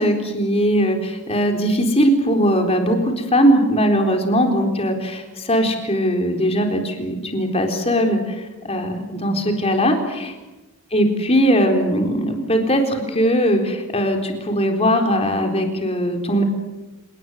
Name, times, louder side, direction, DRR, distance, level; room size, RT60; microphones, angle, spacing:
voice 1, 0.0-8.4 8.6-10.3 10.9-16.4, equal, 30° left, 4 dB, 4.0 m, -19 dB
29.5 x 19.0 x 8.1 m, 1.1 s
head